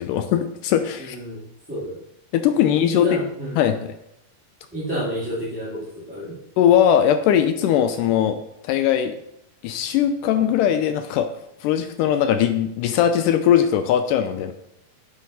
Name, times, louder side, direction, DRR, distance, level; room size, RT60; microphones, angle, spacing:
voice 1, 0.0-1.2 2.3-3.2 3.6-3.8 6.6-8.4 8.6-9.2 9.6-11.3 11.6-14.5, left 9 dB, 85° left, 8 dB, 1.9 m, -20 dB
voice 2, 1.0-2.0 2.6-3.7 4.7-6.3, right 1 dB, 5° right, -11 dB, 1.5 m, -30 dB
9.2 x 6.5 x 4.1 m, 0.81 s
omnidirectional pair, 4.2 m